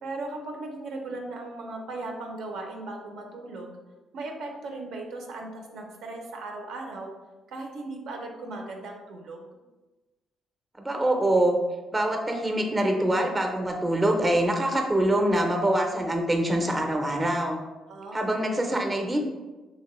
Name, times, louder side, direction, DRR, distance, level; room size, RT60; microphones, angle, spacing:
voice 1, 0.0-3.8 4.1-7.1 7.5-9.5 17.9-18.4, right 2 dB, 80° right, 1 dB, 0.5 m, -37 dB
voice 2, 10.8-11.6 11.9-17.6 18.1-19.2, right 1 dB, 20° right, 3 dB, 0.5 m, -24 dB
2.9 x 2.8 x 3.0 m, 1.2 s
cardioid pair, 90°, 0 cm